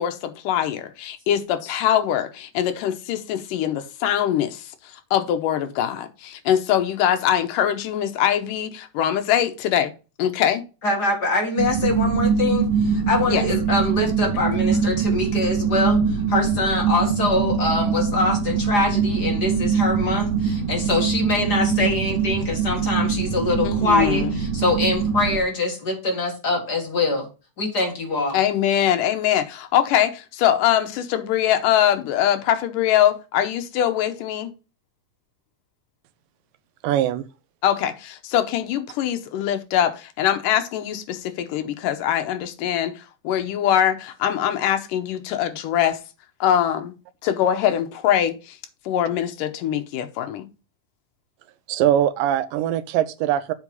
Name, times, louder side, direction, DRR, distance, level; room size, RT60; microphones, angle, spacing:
voice 1, 0.0-9.9 10.2-10.6 13.3-13.5 23.6-24.3 28.3-34.5 37.6-46.0 46.4-46.9 47.2-48.6 48.9-50.5, left 10 dB, 75° left, 2.4 m, -22 dB
voice 2, 10.8-27.3 27.6-28.4, left 2 dB, 35° left, 1.8 m, -24 dB
sound 1, 11.6-25.4, right 6 dB, 70° right, 2.4 m, -23 dB
voice 3, 36.8-37.3 51.7-53.5, right 11 dB, 85° right, 2.4 m, -21 dB
7.9 x 4.7 x 5.3 m
omnidirectional pair, 3.9 m